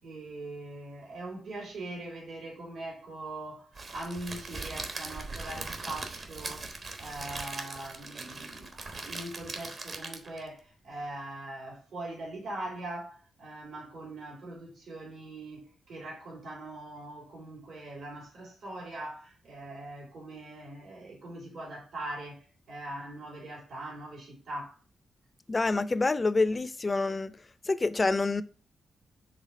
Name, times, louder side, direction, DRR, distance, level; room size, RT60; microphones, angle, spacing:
voice 1, 0.0-6.7 7.0-24.8, right 1 dB, 75° right, 2.9 m, -41 dB
Crackle, 3.8-10.5, right 3 dB, 50° right, 1.2 m, -40 dB
voice 2, 25.5-27.4 27.6-28.4, left 3 dB, 30° left, 0.5 m, -27 dB
5.1 x 3.5 x 5.6 m
cardioid pair, 90°, 0 cm